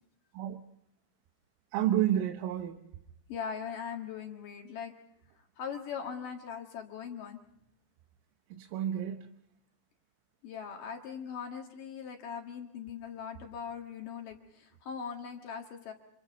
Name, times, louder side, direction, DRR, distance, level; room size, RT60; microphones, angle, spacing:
voice 1, 1.7-2.8 8.5-9.3, right 11 dB, 85° right, 3.6 m, -30 dB
voice 2, 3.3-4.9 5.6-7.4 10.4-15.9, left 7 dB, 55° left, 2.6 m, -40 dB
27.0 x 26.5 x 4.0 m
omnidirectional pair, 5.7 m